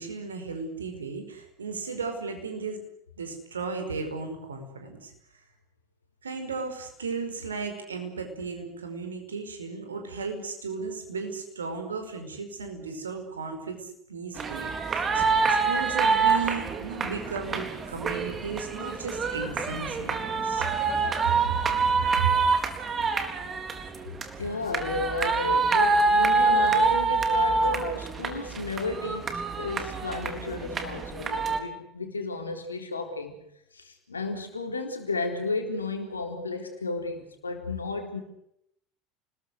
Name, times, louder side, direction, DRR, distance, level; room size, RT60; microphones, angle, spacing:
voice 1, 0.0-2.8 3.2-5.1 6.2-15.2 15.5-20.7 21.4-22.3, right 5 dB, 80° right, 6 dB, 5.1 m, -35 dB
sound 1, 14.4-31.6, right 4 dB, 30° right, 4.0 m, -26 dB
voice 2, 24.4-33.3 33.7-38.2, left 3 dB, 85° left, 5 dB, 4.0 m, -33 dB
29.5 x 21.0 x 6.5 m, 0.75 s
figure-of-eight pair, 70°, 0 cm